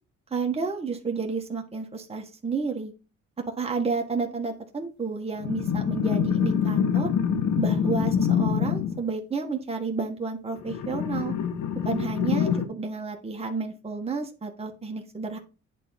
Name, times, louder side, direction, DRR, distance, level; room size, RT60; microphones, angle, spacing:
voice 1, 0.3-2.9 3.6-7.1 7.5-11.3 11.8-15.4, right 4 dB, 20° right, 2 dB, 1.6 m, -31 dB
sound 1, 5.4-9.0 10.6-12.7, left 8 dB, 70° left, 1.4 m, -25 dB
9.1 x 3.8 x 5.8 m, 0.33 s
cardioid pair, 90°, 30 cm